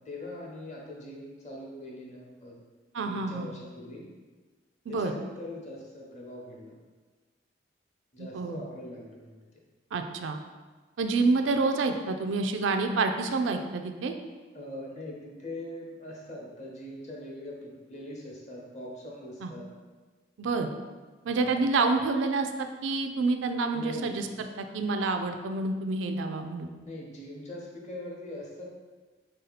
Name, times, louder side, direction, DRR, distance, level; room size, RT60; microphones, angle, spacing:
voice 1, 0.0-2.6 3.0-4.1 4.9-6.8 8.1-9.4 14.5-19.7 21.2-21.6 23.7-24.3 26.8-28.7, left 1 dB, 40° left, -2 dB, 0.8 m, -42 dB
voice 2, 2.9-3.5 4.9-5.1 8.2-8.6 9.9-10.4 11.0-14.1 19.4-19.5 20.4-20.7 21.3-24.3 24.7-26.7, right 3 dB, 75° right, 6 dB, 0.4 m, -28 dB
3.7 x 2.7 x 4.0 m, 1.3 s
head